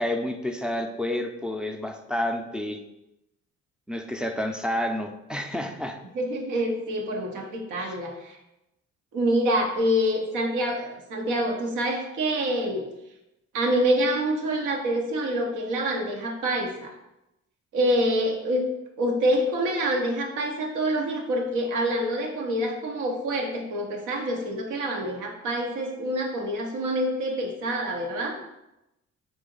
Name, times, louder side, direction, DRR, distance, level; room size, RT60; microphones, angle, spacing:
voice 1, 0.0-2.8 3.9-6.0, left 1 dB, 5° right, 3 dB, 0.4 m, -29 dB
voice 2, 6.1-8.4 9.1-12.8 13.5-16.9 17.7-18.7 19.0-28.4, equal, 85° right, 1 dB, 0.9 m, -26 dB
4.1 x 2.8 x 3.8 m, 0.92 s
cardioid pair, 90°, 30 cm